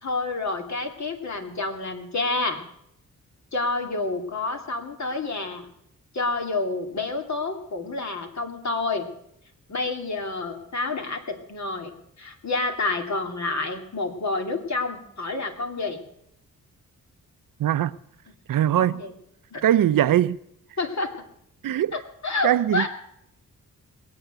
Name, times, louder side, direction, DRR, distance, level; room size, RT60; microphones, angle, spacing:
voice 1, 0.0-2.6 3.5-5.7 6.1-9.1 9.7-11.9 12.2-16.0 18.8-19.1 19.5-19.6 20.8-21.1 22.2-22.9, left 3 dB, 55° left, 2.9 m, -28 dB
voice 2, 17.6-17.9 18.5-19.0 19.6-20.4 21.6-22.0 22.4-22.9, right 11 dB, 70° right, 0.6 m, -21 dB
21.0 x 8.5 x 8.0 m
cardioid pair, 75°, 34 cm